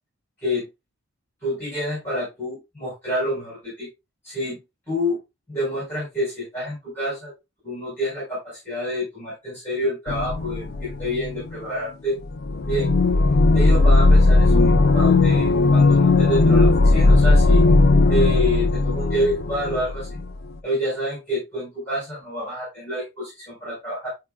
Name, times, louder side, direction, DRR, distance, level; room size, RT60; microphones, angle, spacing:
voice 1, 1.4-3.9 4.2-4.6 4.9-5.2 5.5-7.3 7.6-12.2 12.6-13.0 13.5-17.6 18.1-20.2 20.6-24.1, left 1 dB, 10° left, -7 dB, 4.7 m, -28 dB
sound 1, 10.1-11.6 12.2-20.3, left 2 dB, 45° left, 0.5 m, -17 dB
10.0 x 4.9 x 2.3 m, 0.23 s
head